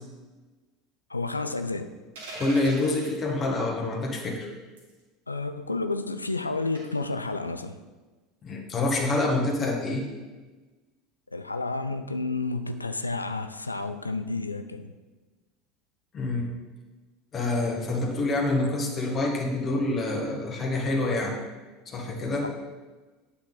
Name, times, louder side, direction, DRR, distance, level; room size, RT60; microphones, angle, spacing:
voice 1, 1.1-1.9 5.3-7.8 11.3-14.9 22.4-22.5, left 3 dB, 85° left, 9 dB, 0.4 m, -31 dB
sound 1, 2.2-3.1 4.8-5.0 6.8-7.1, right 2 dB, 70° right, 2.5 m, -40 dB
voice 2, 2.3-4.5 8.4-10.0 16.1-16.4 17.3-21.4 21.8-22.5, left 2 dB, 30° left, 0 dB, 1.8 m, -27 dB
8.8 x 5.8 x 4.0 m, 1.2 s
figure-of-eight pair, 75°, 0 cm